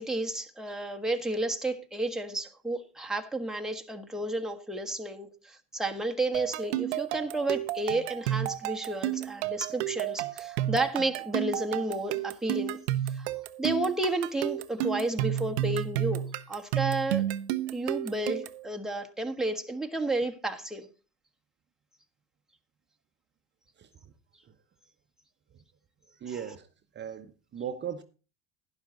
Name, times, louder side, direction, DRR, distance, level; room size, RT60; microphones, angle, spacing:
voice 1, 0.0-12.8 13.1-13.2 13.6-17.2 17.7-20.9 26.3-26.4, right 2 dB, ahead, 1.5 m, -32 dB
sound 1, 6.3-18.7, right 13 dB, 75° right, 0.8 m, -31 dB
voice 2, 26.2-26.7 26.9-28.0, right 8 dB, 35° right, 1.0 m, -37 dB
11.5 x 10.5 x 4.0 m
hypercardioid pair, 80°, 33 cm